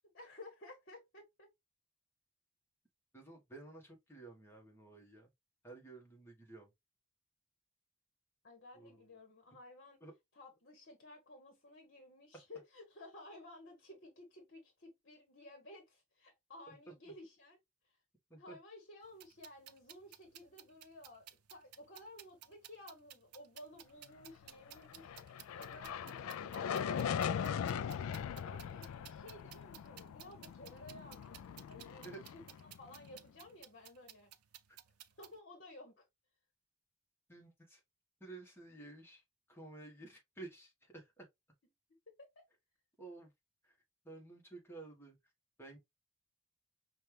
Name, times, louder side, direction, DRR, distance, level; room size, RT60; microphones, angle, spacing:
voice 1, 0.0-1.5 8.4-10.0 10.3-17.6 17.8-18.0 18.4-25.1 25.5-34.3 35.2-36.1 42.3-42.4, left 1 dB, 45° left, 1.1 m, -55 dB
voice 2, 3.1-5.3 5.6-6.7 8.7-9.1 10.0-10.1 16.7-16.9 18.3-18.6 26.0-26.2 32.0-32.2 34.7-34.8 37.3-37.8 38.2-39.2 39.5-41.3 43.0-43.3 43.6-43.8 44.0-45.2 45.6-45.8, right 3 dB, 10° left, 1.2 m, -52 dB
sound 1, 19.0-35.4, right 12 dB, 85° right, 0.5 m, -57 dB
sound 2, 24.8-33.2, left 8 dB, 70° left, 0.3 m, -40 dB
5.3 x 2.3 x 3.2 m
head